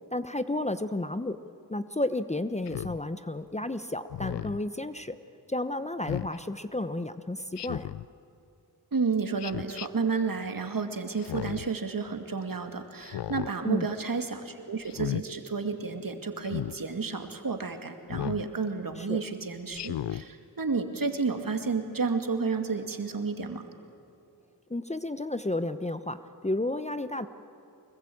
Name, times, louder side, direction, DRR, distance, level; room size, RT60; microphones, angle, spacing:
voice 1, 0.1-1.4 1.7-5.2 5.5-7.9 13.6-14.0 19.0-19.2 24.7-27.3, left 1 dB, 15° left, 12 dB, 0.9 m, -32 dB
Speech synthesizer, 2.7-3.0 4.1-4.6 6.0-6.4 7.6-8.1 9.4-9.9 11.2-11.7 13.0-13.5 14.8-15.2 16.4-16.8 18.1-18.4 19.7-20.2, left 12 dB, 80° left, 0.5 m, -34 dB
voice 2, 8.9-23.6, right 4 dB, 55° right, 6 dB, 2.4 m, -31 dB
24.5 x 21.5 x 8.7 m, 2.6 s
cardioid pair, 50°, 41 cm